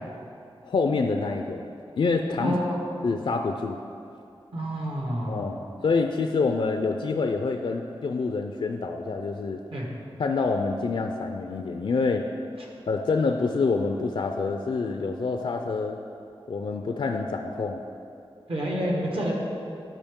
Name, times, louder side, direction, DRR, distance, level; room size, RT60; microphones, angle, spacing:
voice 1, 0.6-1.6 2.0-2.6 3.0-3.8 5.3-5.6 5.8-9.6 10.2-12.2 12.9-16.0 16.5-17.8, left 4 dB, 65° left, 4 dB, 0.4 m, -26 dB
voice 2, 2.4-2.9 4.5-5.6 9.7-9.9 18.5-19.4, equal, 65° right, -2 dB, 1.6 m, -28 dB
11.5 x 4.8 x 3.6 m, 2.6 s
wide cardioid pair, 60°, 10 cm